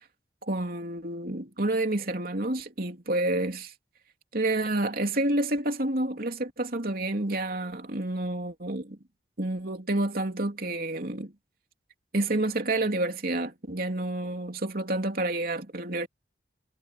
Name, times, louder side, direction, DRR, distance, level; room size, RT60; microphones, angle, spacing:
voice 1, 0.5-3.7 4.3-9.0 9.4-11.3 12.1-16.1, right 2 dB, 55° right, 3.3 m, -29 dB
head